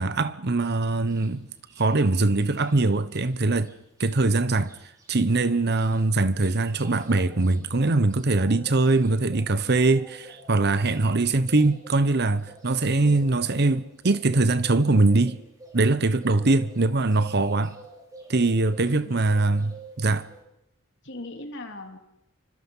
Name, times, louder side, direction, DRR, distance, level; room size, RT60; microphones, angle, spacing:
voice 1, 0.0-1.5 1.8-3.7 4.0-4.7 5.1-15.4 15.7-17.8 18.3-20.3, right 2 dB, 55° right, 1.1 m, -22 dB
sound 1, 1.1-1.3 1.7-3.3 3.6-3.7 4.0-19.0 19.3-20.4, right 2 dB, 20° right, 4.7 m, -49 dB
voice 2, 13.0-13.4 16.4-16.6 18.9-19.2 21.0-22.0, left 2 dB, 60° left, 3.4 m, -40 dB
27.5 x 25.5 x 5.7 m
head